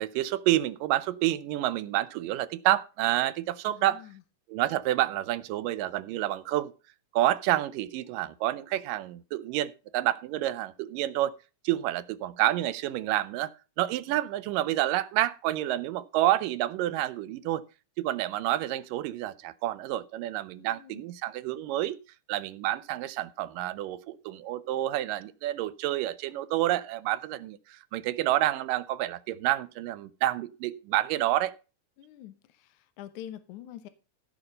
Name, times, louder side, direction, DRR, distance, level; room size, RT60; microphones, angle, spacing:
voice 1, 0.0-4.0 4.5-6.7 7.1-11.3 11.6-13.5 13.8-17.6 18.0-22.0 22.3-31.5, right 14 dB, 85° right, 2.4 m, -29 dB
voice 2, 3.7-4.2 20.6-21.1 32.0-33.9, left 11 dB, 70° left, 2.3 m, -46 dB
15.5 x 5.8 x 5.4 m
omnidirectional pair, 3.8 m